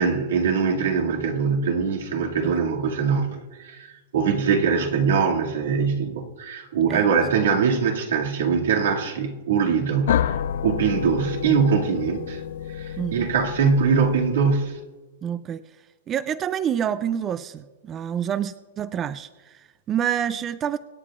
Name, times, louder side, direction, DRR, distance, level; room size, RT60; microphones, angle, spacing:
voice 1, 0.0-12.4 12.8-14.8, right 6 dB, 80° right, 0 dB, 2.2 m, -22 dB
sound 1, 10.1-14.8, left 10 dB, 70° left, 0.4 m, -29 dB
voice 2, 13.0-13.3 15.2-15.6 16.1-20.8, right 9 dB, 20° right, 15 dB, 0.3 m, -27 dB
25.0 x 9.3 x 2.4 m, 1.2 s
supercardioid pair, 155°, 0 cm